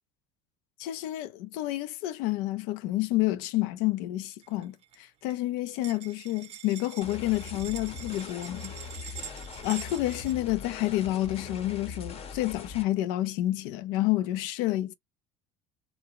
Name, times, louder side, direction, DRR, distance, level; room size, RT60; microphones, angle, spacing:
voice 1, 0.8-8.7 9.1-9.2 9.6-14.9, left 16 dB, 70° left, 0.5 m, -29 dB
sound 1, 4.4-5.0 5.3-10.3, right 10 dB, 45° right, 0.6 m, -45 dB
sound 2, 7.0-12.8, left 5 dB, 45° left, 0.9 m, -41 dB
2.5 x 2.0 x 2.9 m
hypercardioid pair, 80°, 15 cm